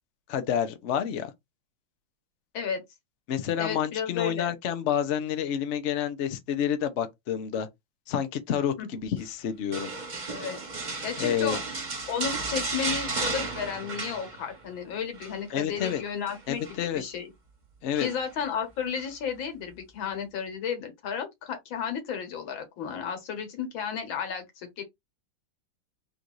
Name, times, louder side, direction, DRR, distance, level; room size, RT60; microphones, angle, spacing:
voice 1, 0.3-1.3 3.3-7.7 8.1-9.9 11.2-11.6 15.5-16.0 16.5-17.0 17.8-18.1, left 9 dB, 60° left, 0.7 m, -29 dB
voice 2, 3.6-4.6 8.8-8.9 10.3-10.6 11.0-11.6 12.1-17.3 18.0-24.8, left 7 dB, 90° left, 2.0 m, -33 dB
sound 1, 9.7-14.7 15.0-15.4 15.8-16.8 18.0-18.4 18.9-19.1, right 3 dB, 30° right, 1.1 m, -34 dB
3.9 x 2.5 x 4.5 m
omnidirectional pair, 2.1 m